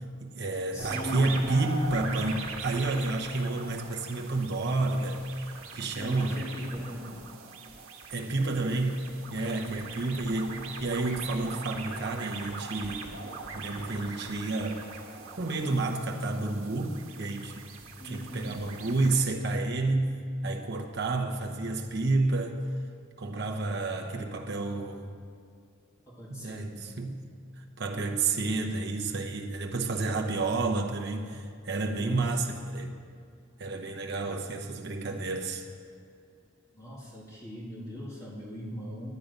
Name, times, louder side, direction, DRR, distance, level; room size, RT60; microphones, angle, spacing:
voice 1, 0.2-5.2 5.7-6.4 8.1-13.1 13.5-14.9 15.4-17.6 18.0-20.1 20.4-22.6 23.2-25.1 26.3-27.2 27.6-32.9 33.6-35.6, right 2 dB, 55° right, 2 dB, 0.9 m, -30 dB
voice 2, 0.7-1.4 5.9-7.2 9.4-9.8 18.0-18.6 26.1-27.0 31.9-32.5 34.2-34.4 36.7-39.1, equal, 15° left, -5 dB, 1.8 m, -40 dB
sound 1, 0.8-19.2, right 4 dB, 85° right, 1.3 m, -41 dB
10.0 x 9.5 x 5.2 m, 2.3 s
head